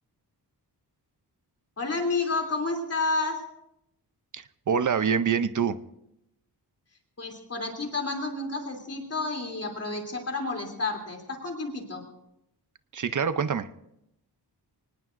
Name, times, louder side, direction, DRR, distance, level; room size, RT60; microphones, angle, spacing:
voice 1, 1.8-3.4 7.2-12.0, left 3 dB, 35° left, 2 dB, 2.9 m, -30 dB
voice 2, 4.3-5.8 12.9-13.7, right 6 dB, 50° right, 13 dB, 0.6 m, -26 dB
24.5 x 19.0 x 2.5 m, 0.82 s
wide cardioid pair, 175°, 40 cm